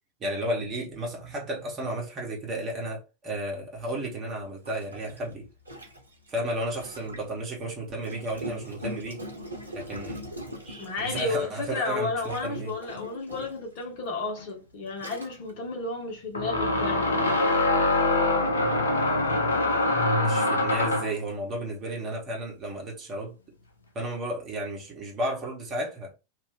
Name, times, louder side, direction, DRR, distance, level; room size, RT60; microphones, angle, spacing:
voice 1, 0.2-5.5 6.3-9.2 9.7-10.2 10.6-12.7 20.1-23.4 23.9-26.1, right 1 dB, 30° right, 1.3 m, -33 dB
Gurgling, 3.8-3.9 4.6-7.4 8.0-11.6 12.2-13.7 14.4-14.5 14.9-15.5, equal, 80° right, 0.8 m, -41 dB
voice 2, 10.8-17.2, left 3 dB, 45° left, 1.1 m, -32 dB
sound 1, 14.4-14.5 16.3-21.2, left 2 dB, 75° left, 0.5 m, -24 dB
2.6 x 2.6 x 3.7 m
figure-of-eight pair, 90°, 0 cm